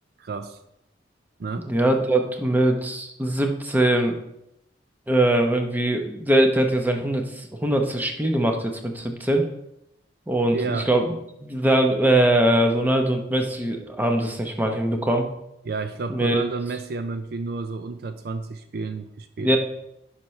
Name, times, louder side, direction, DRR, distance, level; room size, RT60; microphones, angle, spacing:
voice 1, 0.2-0.6 1.4-1.7 10.5-10.9 15.7-19.6, right 3 dB, 60° right, 9 dB, 0.4 m, -31 dB
voice 2, 1.7-4.2 5.1-9.4 10.3-11.2 11.4-15.3 16.1-16.5 19.4-19.6, right 1 dB, 10° right, 3 dB, 0.9 m, -22 dB
10.0 x 5.8 x 3.2 m, 0.81 s
head